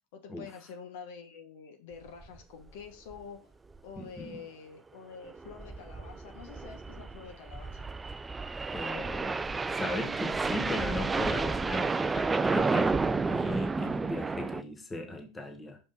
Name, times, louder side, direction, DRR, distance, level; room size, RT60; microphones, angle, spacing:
voice 1, 0.1-3.5 3.8-7.9, left 6 dB, 70° left, 1.2 m, -47 dB
sound 1, 2.2-2.4 2.7-2.8 3.1-3.2 3.7-4.0 5.3-14.6, right 4 dB, 15° right, 0.4 m, -31 dB
voice 2, 4.0-4.4 8.7-15.8, left 1 dB, 20° left, 1.5 m, -37 dB
5.4 x 5.3 x 4.1 m
hypercardioid pair, 90°, 0 cm